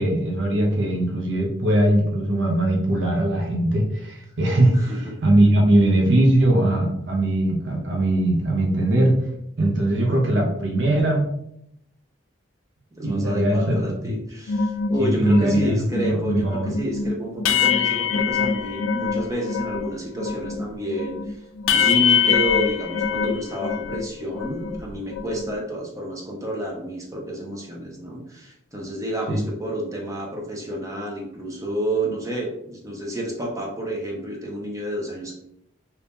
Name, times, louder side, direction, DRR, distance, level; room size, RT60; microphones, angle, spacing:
voice 1, 0.0-9.2 9.6-11.3 13.0-14.1 15.0-15.7 16.1-16.7 29.3-29.4, right 1 dB, 65° right, 0 dB, 0.7 m, -20 dB
voice 2, 12.9-35.3, equal, 15° right, -1 dB, 0.6 m, -30 dB
sound 1, 14.5-19.9 20.2-24.1 24.3-25.5, left 6 dB, 85° left, 0.3 m, -24 dB
2.9 x 2.8 x 3.5 m, 0.75 s
head